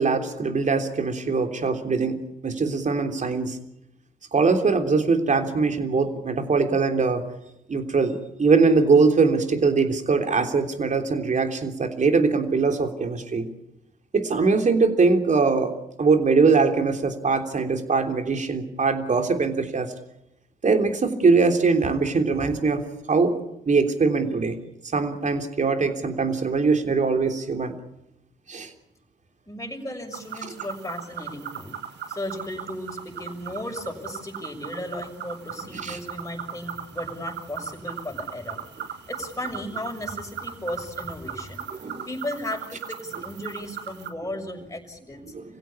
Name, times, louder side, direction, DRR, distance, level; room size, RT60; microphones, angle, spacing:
voice 1, 0.0-3.6 4.3-7.2 7.7-13.5 14.1-15.7 16.0-19.9 20.6-22.8 23.1-23.4 23.7-24.6 24.9-27.7 28.5-28.7 35.8-36.0 41.7-42.1 45.3-45.4, right 4 dB, 40° right, 6 dB, 3.3 m, -22 dB
voice 2, 29.5-31.8 32.1-38.6 39.1-45.3, left 1 dB, 15° left, 3 dB, 6.6 m, -35 dB
sound 1, 30.1-44.1, right 8 dB, 60° right, 1.9 m, -38 dB
26.5 x 16.0 x 8.7 m, 0.85 s
hypercardioid pair, 50°, 20 cm